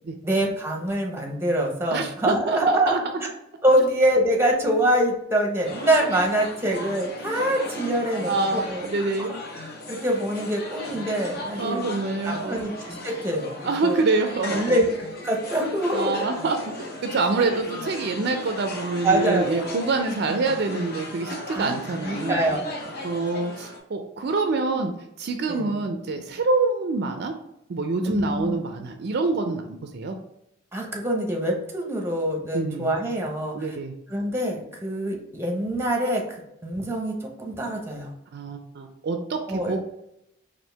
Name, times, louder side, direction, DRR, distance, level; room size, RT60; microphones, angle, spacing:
voice 1, 0.2-3.0 3.6-8.8 9.2-9.3 9.5-11.9 12.2-14.0 14.5-14.9 15.1-16.2 17.4-17.6 19.0-19.9 20.2-20.3 21.5-21.7 22.0-22.9 24.7-24.9 25.5-25.7 28.0-28.6 30.7-33.8 34.1-38.1 39.5-39.7, right 1 dB, 10° right, 1 dB, 0.7 m, -25 dB
voice 2, 1.9-3.0 8.2-9.3 11.6-12.7 13.6-14.8 15.9-22.6 23.0-24.9 25.2-27.3 27.7-29.6 29.9-30.2 32.5-32.9 33.5-33.9 38.3-39.8, right 3 dB, 55° right, 6 dB, 0.4 m, -26 dB
sound 1, 5.6-23.8, left 1 dB, 50° left, 0.7 m, -36 dB
4.4 x 2.5 x 3.3 m, 0.80 s
head